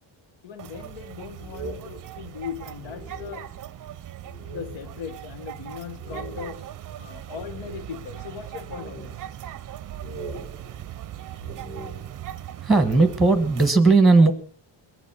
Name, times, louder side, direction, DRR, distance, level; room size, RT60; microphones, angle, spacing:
voice 1, 0.4-3.5 4.5-6.7 7.0-9.1, left 7 dB, 75° left, 1.3 m, -38 dB
sound 1, 0.6-13.7, right 12 dB, 45° right, 0.6 m, -39 dB
sound 2, 1.4-3.8 4.2-5.1 5.4-5.5 6.0-8.2 8.7-9.7 10.0-12.4, right 2 dB, 50° left, 5.9 m, -42 dB
voice 2, 12.6-14.3, right 3 dB, ahead, 1.3 m, -17 dB
22.0 x 7.4 x 5.6 m
cardioid pair, 145°, 45 cm